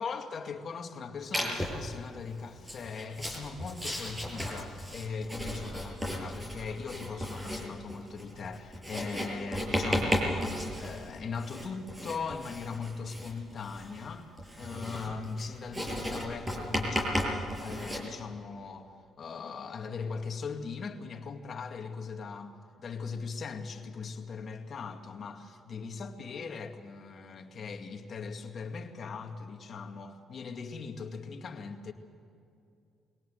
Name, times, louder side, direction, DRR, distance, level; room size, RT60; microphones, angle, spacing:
voice 1, 0.0-14.3 14.6-22.5 22.8-31.9, left 5 dB, 55° left, 2.2 m, -39 dB
Writing, 1.3-1.9 2.6-18.0, equal, 15° right, 7.4 m, -35 dB
23.0 x 18.5 x 8.0 m
cardioid pair, 85°, 0 cm